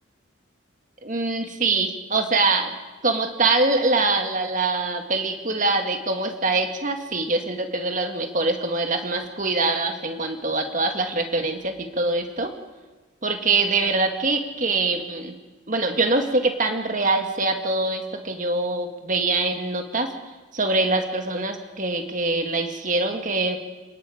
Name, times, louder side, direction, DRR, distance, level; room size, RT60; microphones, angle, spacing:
voice 1, 1.0-2.8 3.0-12.5 13.2-15.3 15.7-20.1 20.5-23.6, right 3 dB, 40° right, 5 dB, 1.9 m, -24 dB
29.5 x 18.5 x 5.0 m, 1.2 s
head